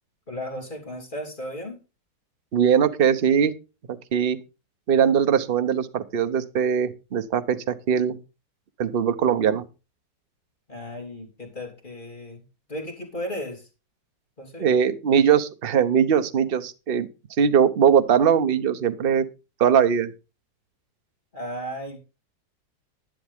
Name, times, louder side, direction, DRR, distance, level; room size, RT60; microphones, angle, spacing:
voice 1, 0.3-1.8 10.7-13.7 14.4-14.7 21.3-22.0, equal, 25° left, 1 dB, 3.0 m, -35 dB
voice 2, 2.5-3.5 3.9-4.4 4.9-8.2 8.8-9.7 14.6-17.1 17.4-19.3 19.6-20.1, right 7 dB, 45° right, 11 dB, 0.8 m, -21 dB
11.0 x 10.5 x 3.6 m, 0.29 s
omnidirectional pair, 1.9 m